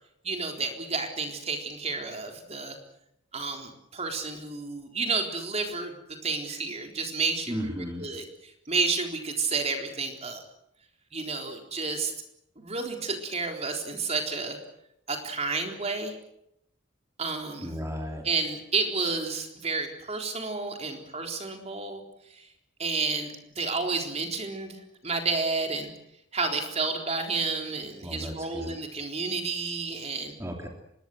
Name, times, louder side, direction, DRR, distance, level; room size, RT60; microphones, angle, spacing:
voice 1, 0.2-2.8 3.3-5.9 6.2-10.4 11.1-12.1 12.6-14.6 15.1-16.2 17.2-17.7 18.2-22.0 22.4-22.5 22.8-25.9 26.3-30.3, right 4 dB, 35° right, 3 dB, 3.9 m, -31 dB
voice 2, 7.5-8.1 17.6-18.2 28.0-28.8 30.4-30.7, equal, 15° right, 1 dB, 3.1 m, -34 dB
25.0 x 21.0 x 7.9 m, 0.81 s
head